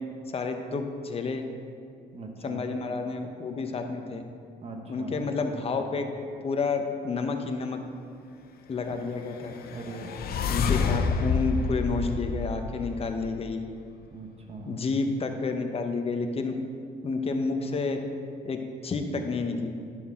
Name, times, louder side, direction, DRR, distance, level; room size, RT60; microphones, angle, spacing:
voice 1, 0.3-1.4 2.4-4.2 4.9-6.0 6.4-7.8 8.7-9.5 10.5-13.6 14.6-16.5 17.0-18.0 18.4-19.7, left 4 dB, 35° left, 5 dB, 0.9 m, -30 dB
voice 2, 2.1-2.7 4.6-5.1 8.9-9.0 9.7-10.3 14.1-14.8, right 3 dB, 35° right, 3 dB, 1.2 m, -41 dB
sound 1, 9.3-13.5, left 5 dB, 65° left, 0.6 m, -29 dB
11.0 x 6.2 x 3.7 m, 2.3 s
cardioid pair, 100°, 17 cm